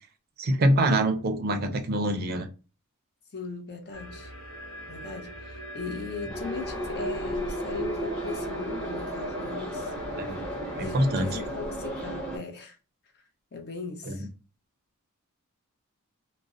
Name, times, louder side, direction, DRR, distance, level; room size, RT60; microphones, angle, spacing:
voice 1, 0.4-2.5 10.2-10.3 10.8-11.3 14.1-14.2, right 1 dB, 45° right, 0.5 m, -24 dB
voice 2, 3.3-4.3 4.9-9.9 10.8-12.8 13.1-13.2 13.5-14.3, left 4 dB, 50° left, 0.6 m, -38 dB
sound 1, 3.9-11.5, right 1 dB, 65° left, 1.1 m, -44 dB
Subway metro underground, 6.3-12.4, right 1 dB, 5° left, 0.8 m, -33 dB
2.4 x 2.0 x 2.5 m
head